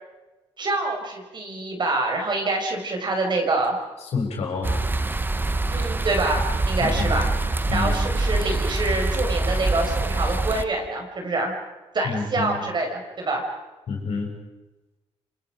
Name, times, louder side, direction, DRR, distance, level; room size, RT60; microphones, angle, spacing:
voice 1, 0.6-3.8 5.7-7.3 7.7-11.5 11.9-13.4, right 2 dB, 40° right, 2 dB, 6.1 m, -26 dB
voice 2, 4.1-4.7 6.8-7.1 7.7-8.0 12.0-12.6 13.9-14.3, left 4 dB, 65° left, 0 dB, 7.6 m, -27 dB
sound 1, 4.6-10.6, right 2 dB, 20° right, 1.2 m, -24 dB
28.0 x 27.0 x 5.3 m, 1.1 s
cardioid pair, 85°, 11 cm